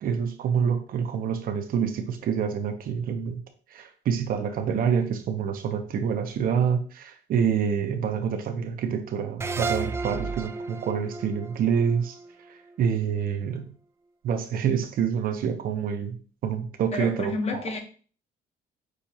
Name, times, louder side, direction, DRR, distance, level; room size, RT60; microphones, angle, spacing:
voice 1, 0.0-3.4 3.7-12.1 12.8-13.6 14.2-16.2 16.4-17.6, right 7 dB, 60° right, 7 dB, 0.7 m, -27 dB
sound 1, 9.4-12.7, right 4 dB, 15° right, 0.3 m, -33 dB
voice 2, 16.9-17.8, left 4 dB, 40° left, 5 dB, 1.0 m, -30 dB
6.4 x 2.4 x 2.7 m, 0.40 s
cardioid pair, 110°, 17 cm